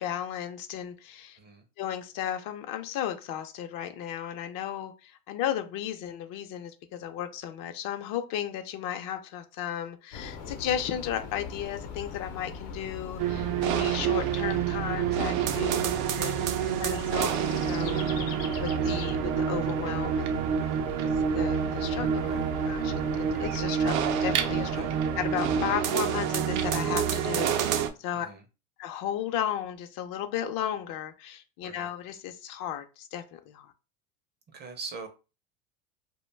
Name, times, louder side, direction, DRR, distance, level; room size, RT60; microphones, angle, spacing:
voice 1, 0.0-1.4 1.8-15.8 16.2-17.3 17.6-18.0 18.6-20.4 21.3-24.8 25.2-28.3 28.8-33.7, left 10 dB, 55° left, 0.5 m, -34 dB
sound 1, 10.1-25.8, left 5 dB, 85° left, 0.8 m, -40 dB
sound 2, 13.2-27.9, right 8 dB, 80° right, 0.5 m, -28 dB
voice 2, 28.1-28.4 31.6-31.9 34.5-35.1, right 4 dB, 25° right, 0.5 m, -42 dB
2.3 x 2.2 x 3.2 m
supercardioid pair, 115°, 40 cm